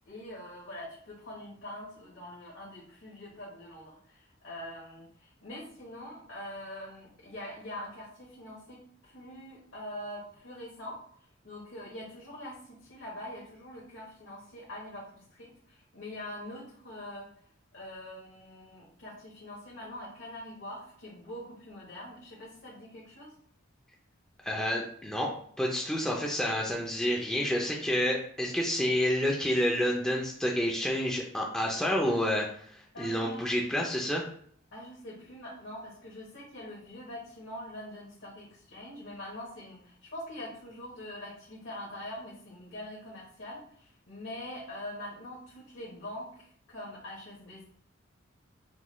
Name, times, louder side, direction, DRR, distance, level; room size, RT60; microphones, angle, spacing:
voice 1, 0.1-11.0 11.4-17.3 17.7-23.3 32.9-33.5 34.7-47.6, left 1 dB, 70° left, -5 dB, 1.1 m, -44 dB
voice 2, 24.4-25.3 25.6-34.2, equal, 5° left, -2 dB, 0.4 m, -29 dB
5.9 x 2.3 x 3.1 m, 0.62 s
head